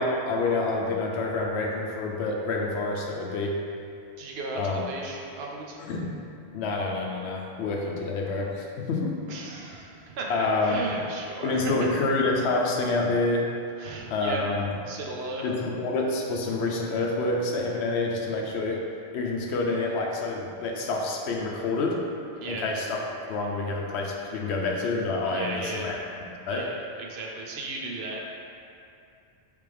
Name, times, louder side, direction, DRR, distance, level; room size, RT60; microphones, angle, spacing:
voice 1, 0.0-3.6 4.6-4.8 5.8-6.1 6.5-9.2 10.3-10.8 11.4-13.5 14.1-14.7 15.4-18.8 19.1-22.1 22.4-23.0 23.3-26.0 26.5-26.7, left 3 dB, 90° left, 0 dB, 0.9 m, -27 dB
voice 2, 4.2-5.8 9.3-11.7 13.8-14.5 14.9-15.5 22.4-22.7 25.3-25.9 26.5-28.2, right 3 dB, 75° right, -1 dB, 0.8 m, -36 dB
3.7 x 3.3 x 3.3 m, 2.6 s
omnidirectional pair, 1.1 m